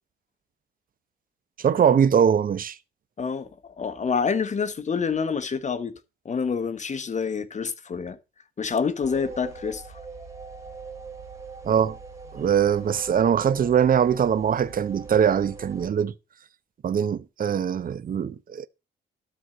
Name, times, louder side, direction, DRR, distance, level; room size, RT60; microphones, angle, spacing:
voice 1, 1.6-2.8 11.6-12.0 12.3-16.1 16.8-18.7, right 8 dB, 45° right, 0.9 m, -22 dB
voice 2, 3.2-5.9 6.2-8.2 8.6-9.8, left 5 dB, 35° left, 1.3 m, -27 dB
sound 1, 9.0-15.9, right 4 dB, 15° right, 3.3 m, -40 dB
12.5 x 4.5 x 7.7 m
cardioid pair, 90°, 20 cm